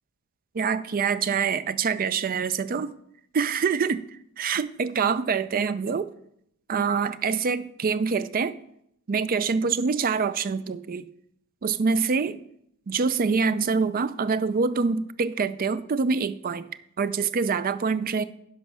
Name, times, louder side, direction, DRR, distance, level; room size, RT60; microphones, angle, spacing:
voice 1, 0.5-2.9 3.3-4.0 4.4-6.1 6.7-8.6 9.1-11.0 11.6-12.4 12.9-16.7 17.0-18.2, right 5 dB, 40° right, 0.4 m, -25 dB
11.0 x 5.2 x 5.9 m
head